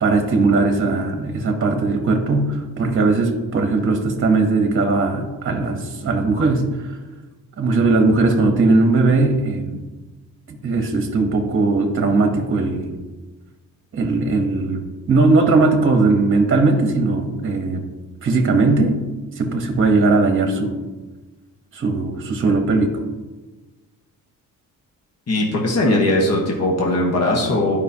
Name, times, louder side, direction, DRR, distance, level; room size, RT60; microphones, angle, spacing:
voice 1, 0.0-6.6 7.6-9.8 10.5-12.9 13.9-17.8 18.2-19.0 19.4-20.8 21.7-22.9, right 3 dB, 35° right, 4 dB, 1.0 m, -18 dB
voice 2, 25.3-27.8, left 1 dB, 45° left, -1 dB, 1.3 m, -19 dB
12.0 x 5.0 x 2.8 m, 1.2 s
wide cardioid pair, 140°, 34 cm